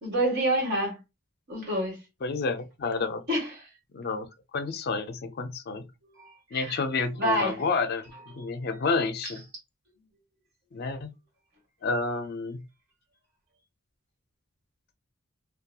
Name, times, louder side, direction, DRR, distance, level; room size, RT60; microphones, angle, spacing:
voice 1, 0.0-1.0 1.5-2.0 3.3-3.7 6.1-6.8 7.2-7.6 9.2-9.3, right 1 dB, 55° right, 1.5 m, -28 dB
voice 2, 2.2-3.2 3.9-4.3 4.5-5.9 6.5-9.5 10.7-11.1 11.8-12.6, left 4 dB, 50° left, 0.4 m, -30 dB
2.8 x 2.3 x 2.2 m
head